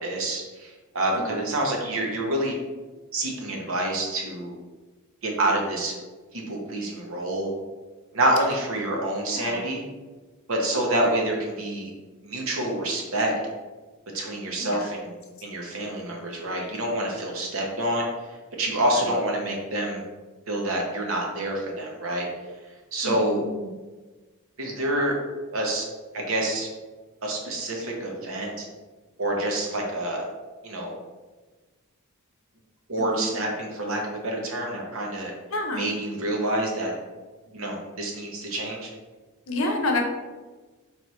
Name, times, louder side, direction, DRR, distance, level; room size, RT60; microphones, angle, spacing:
voice 1, 0.0-2.5 3.1-4.5 5.2-5.9 6.3-7.5 8.1-9.8 10.5-11.9 12.2-13.3 14.1-15.1 15.4-18.0 18.6-20.0 20.5-22.3 22.9-23.4 24.6-25.1 25.5-25.8 26.1-26.7 27.2-28.7 29.2-30.2 30.6-30.9 32.9-35.3 35.7-36.9 37.5-38.9, right 1 dB, 70° right, -1 dB, 0.9 m, -27 dB
voice 2, 9.3-9.7 14.6-14.9 19.0-19.1 23.0-23.8 33.1-33.3 35.5-35.9 39.5-40.0, left 2 dB, 70° left, 3 dB, 0.6 m, -29 dB
4.1 x 3.2 x 3.1 m, 1.3 s
head